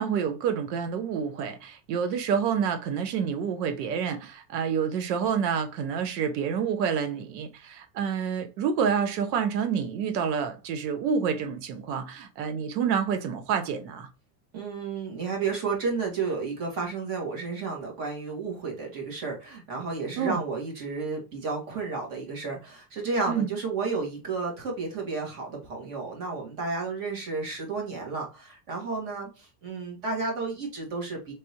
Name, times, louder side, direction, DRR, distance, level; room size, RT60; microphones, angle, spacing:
voice 1, 0.0-14.1 20.2-20.4 23.3-23.5, right 7 dB, 80° right, 1.0 m, -28 dB
voice 2, 14.5-31.3, right 4 dB, 45° right, 1.7 m, -32 dB
3.4 x 3.3 x 2.8 m
supercardioid pair, 160°, 49 cm